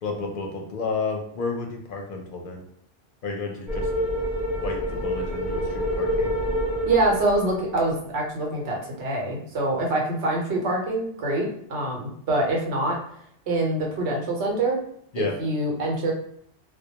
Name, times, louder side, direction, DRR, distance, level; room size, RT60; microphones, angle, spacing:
voice 1, 0.0-2.6 3.2-3.9 4.6-6.3 15.1-15.4, left 4 dB, 60° left, 2 dB, 0.6 m, -31 dB
sound 1, 3.7-8.1, equal, ahead, 0.9 m, -27 dB
voice 2, 6.9-13.0 13.5-14.8 15.2-16.1, right 2 dB, 90° right, 0 dB, 1.0 m, -25 dB
2.2 x 2.1 x 2.8 m, 0.67 s
omnidirectional pair, 1.1 m